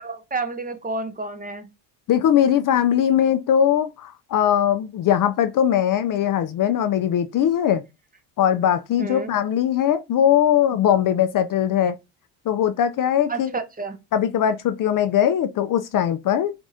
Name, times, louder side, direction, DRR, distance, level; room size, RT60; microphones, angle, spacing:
voice 1, 0.0-1.7 9.0-9.3 13.3-14.0, right 3 dB, 20° right, 0.7 m, -30 dB
voice 2, 2.1-7.8 8.4-11.9 12.5-13.5 14.1-16.5, left 10 dB, 45° left, 0.5 m, -20 dB
4.7 x 2.5 x 2.7 m
supercardioid pair, 80°, 46 cm